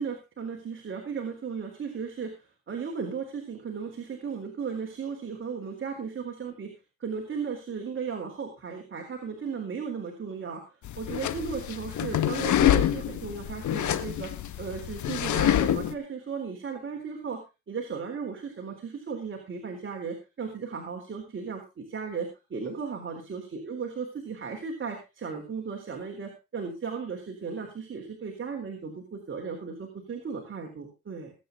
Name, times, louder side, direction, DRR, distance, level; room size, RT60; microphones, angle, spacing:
voice 1, 0.0-2.4 2.7-6.7 7.0-14.3 14.6-17.4 17.7-31.3, right 5 dB, 40° right, 2 dB, 3.9 m, -36 dB
sound 1, 10.8-15.9, left 11 dB, 70° left, 1.7 m, -26 dB
20.5 x 9.1 x 3.8 m, 0.29 s
cardioid pair, 90°, 30 cm